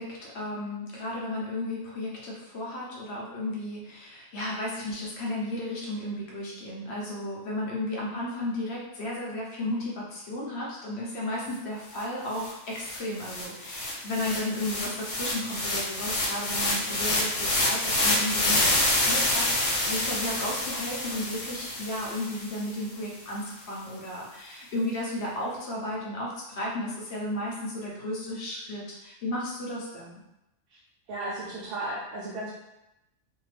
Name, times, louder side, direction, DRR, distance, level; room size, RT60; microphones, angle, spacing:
voice 1, 0.0-30.2, left 1 dB, 60° left, -4 dB, 0.8 m, -34 dB
sound 1, 12.0-12.1 12.3-22.7, left 1 dB, 90° left, 1.2 m, -28 dB
voice 2, 31.1-32.6, right 1 dB, 70° right, -6 dB, 0.8 m, -34 dB
2.7 x 2.2 x 3.1 m, 0.93 s
omnidirectional pair, 1.4 m